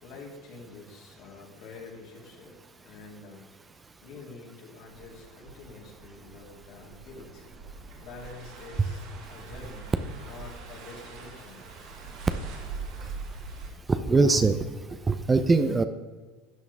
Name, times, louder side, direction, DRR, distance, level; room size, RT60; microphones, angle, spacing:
voice 1, 0.0-2.5 2.8-3.5 4.0-7.5 8.0-9.0 9.3-9.9 10.2-11.6, left 3 dB, 60° left, -2 dB, 3.2 m, -46 dB
sound 1, 4.9-13.7, right 4 dB, 60° right, 2.7 m, -43 dB
voice 2, 13.9-15.8, right 3 dB, 15° right, 10 dB, 0.6 m, -23 dB
12.5 x 8.0 x 3.6 m, 1.4 s
supercardioid pair, 115°, 0 cm